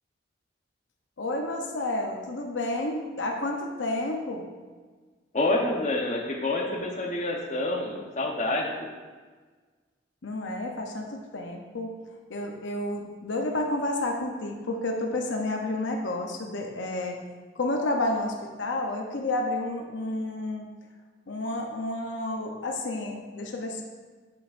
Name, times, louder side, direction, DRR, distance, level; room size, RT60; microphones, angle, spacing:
voice 1, 1.2-4.4 10.2-11.9 12.3-17.2 17.5-20.7 21.3-23.8, left 2 dB, 80° left, 1 dB, 0.7 m, -30 dB
voice 2, 5.3-8.9, left 2 dB, 40° left, -1 dB, 0.9 m, -28 dB
8.5 x 6.4 x 2.5 m, 1.4 s
head